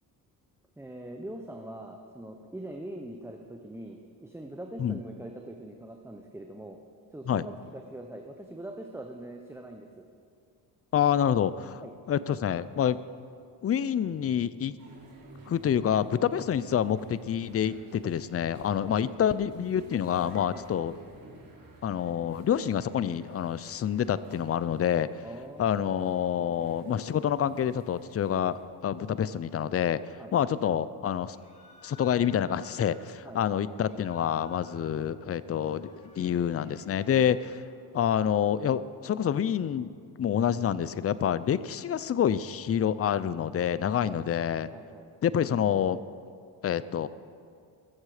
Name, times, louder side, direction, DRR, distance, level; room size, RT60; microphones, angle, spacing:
voice 1, 0.8-6.8 7.1-10.0 11.8-11.9 18.8-19.0 20.5-20.7 25.2-25.9 30.2-30.3 33.2-33.4 44.0-44.2 44.7-45.1, right 1 dB, 5° right, 2 dB, 0.9 m, -43 dB
voice 2, 10.9-11.8 12.1-13.0 13.6-14.8 15.5-20.9 21.8-25.2 25.6-30.0 30.3-31.4 31.8-37.6 37.9-39.9 40.2-44.7 45.2-46.0 46.6-47.1, left 9 dB, 35° left, 16 dB, 0.5 m, -27 dB
sound 1, 14.8-28.6, right 2 dB, 50° right, 3.3 m, -52 dB
sound 2, 31.3-33.0 33.7-35.0 35.4-37.7, left 3 dB, 15° left, 3.8 m, -56 dB
21.5 x 7.5 x 4.9 m, 2.2 s
cardioid pair, 75°, 44 cm